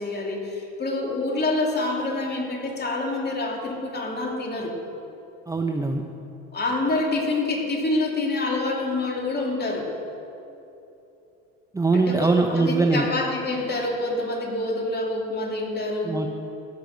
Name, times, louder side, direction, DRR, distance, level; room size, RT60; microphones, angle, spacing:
voice 1, 0.0-4.7 6.5-9.9 11.9-16.2, left 2 dB, 30° left, -1 dB, 2.9 m, -27 dB
voice 2, 5.5-6.0 11.7-13.1 16.0-16.3, right 3 dB, 10° right, 3 dB, 0.7 m, -22 dB
16.0 x 6.7 x 6.5 m, 2.8 s
supercardioid pair, 90°, 34 cm